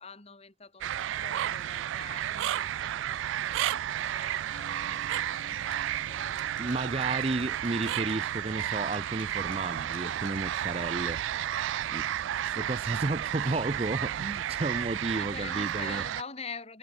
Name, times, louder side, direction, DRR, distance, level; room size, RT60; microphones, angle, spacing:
voice 1, 0.0-7.5 8.4-8.6 12.2-12.5 15.2-16.8, left 4 dB, 30° left, 2.6 m, -46 dB
sound 1, 0.8-16.2, right 11 dB, 70° right, 0.3 m, -32 dB
sound 2, 3.9-11.2, left 5 dB, 75° left, 3.8 m, -56 dB
sound 3, 4.5-14.4 14.7-14.8, equal, 55° right, 7.3 m, -57 dB
voice 2, 6.6-11.2 11.9-12.1 12.5-16.0, right 2 dB, 30° right, 0.6 m, -32 dB
head